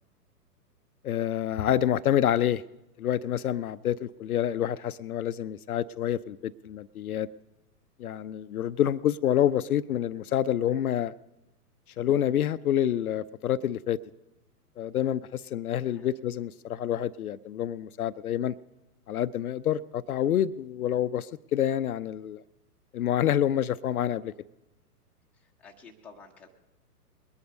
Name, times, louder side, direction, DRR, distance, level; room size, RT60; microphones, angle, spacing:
voice 1, 1.0-2.6 3.0-7.3 8.0-11.1 12.0-14.0 14.8-18.6 19.1-22.4 22.9-24.3, left 10 dB, 65° left, 14 dB, 0.5 m, -27 dB
voice 2, 15.9-16.2 25.3-26.5, left 4 dB, 5° left, -1 dB, 0.7 m, -52 dB
21.0 x 9.7 x 5.2 m, 0.97 s
figure-of-eight pair, 120°, 48 cm